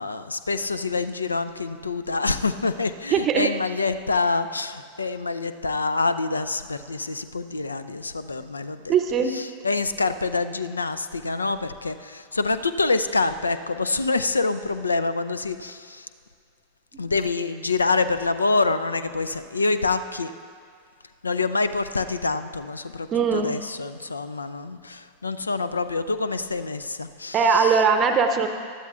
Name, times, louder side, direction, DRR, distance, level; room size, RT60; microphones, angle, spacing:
voice 1, 0.0-8.9 9.4-16.1 17.0-20.3 21.2-27.7, left 3 dB, 80° left, 12 dB, 0.4 m, -26 dB
voice 2, 3.1-3.5 8.9-9.4 23.1-23.5 27.3-28.5, right 6 dB, 30° right, 7 dB, 0.7 m, -20 dB
19.5 x 12.5 x 2.4 m, 2.3 s
figure-of-eight pair, 90°, 0 cm